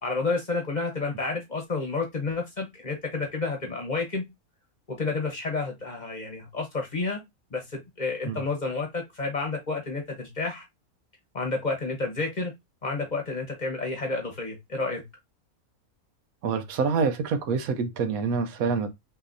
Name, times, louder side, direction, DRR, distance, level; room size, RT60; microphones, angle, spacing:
voice 1, 0.0-4.3 4.9-7.2 7.5-10.6 11.3-12.5 12.8-15.0, left 3 dB, 35° left, 1.1 m, -30 dB
voice 2, 16.4-18.9, right 5 dB, 75° right, 1.2 m, -26 dB
5.9 x 2.8 x 2.6 m
omnidirectional pair, 1.5 m